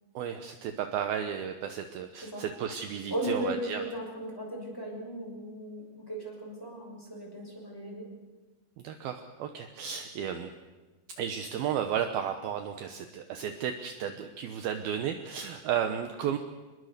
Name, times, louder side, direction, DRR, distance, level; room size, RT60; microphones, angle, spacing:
voice 1, 0.2-3.8 8.8-10.5 11.2-16.4, right 8 dB, 70° right, 7 dB, 2.6 m, -33 dB
voice 2, 3.1-8.1, right 1 dB, 5° left, -1 dB, 5.7 m, -36 dB
25.5 x 21.0 x 6.7 m, 1.2 s
omnidirectional pair, 5.0 m